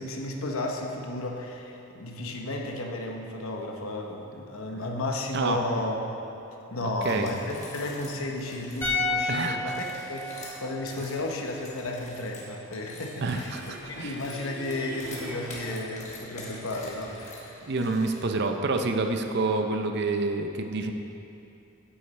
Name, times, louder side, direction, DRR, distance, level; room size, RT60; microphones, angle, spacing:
voice 1, 0.0-6.2 6.7-17.2, left 2 dB, 70° left, 1 dB, 0.8 m, -33 dB
voice 2, 6.8-7.3 9.3-9.7 13.2-14.2 17.6-20.9, right 3 dB, 50° right, 5 dB, 0.5 m, -28 dB
sound 1, 7.0-9.0 9.6-18.5, left 2 dB, 30° left, 1.2 m, -45 dB
sound 2, 8.8-12.0 12.3-12.4, left 3 dB, 10° left, 1.2 m, -32 dB
sound 3, 12.0-15.7, right 1 dB, 10° right, 1.0 m, -44 dB
9.4 x 8.4 x 3.2 m, 2.8 s
head